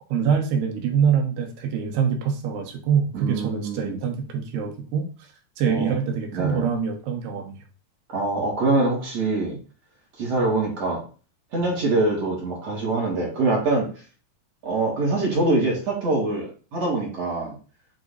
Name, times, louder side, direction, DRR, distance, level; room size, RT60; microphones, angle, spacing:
voice 1, 0.1-5.1 5.6-7.6, right 7 dB, 80° right, 3 dB, 3.3 m, -24 dB
voice 2, 3.1-4.0 5.7-5.9 6.3-6.6 8.1-9.6 10.2-11.0 11.5-13.9 14.6-17.5, right 2 dB, 45° right, -3 dB, 3.2 m, -24 dB
8.6 x 3.7 x 4.0 m, 0.37 s
omnidirectional pair, 4.7 m